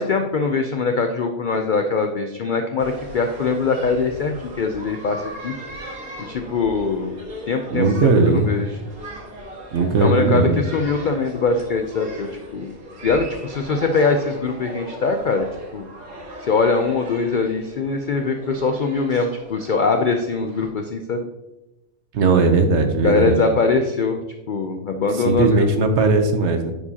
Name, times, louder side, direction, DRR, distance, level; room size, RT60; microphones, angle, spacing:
voice 1, 0.0-5.5 6.2-7.1 7.5-8.7 10.0-12.7 13.0-15.4 15.7-15.9 16.4-21.2 23.0-24.2 24.5-25.6, left 4 dB, 65° left, 5 dB, 0.5 m, -22 dB
sound 1, 2.8-20.7, equal, 85° right, 2.1 m, -38 dB
voice 2, 7.7-8.5 9.7-10.6 22.1-23.4 25.3-26.7, right 3 dB, 60° right, 6 dB, 1.0 m, -18 dB
10.0 x 4.8 x 2.8 m, 0.98 s
omnidirectional pair, 1.4 m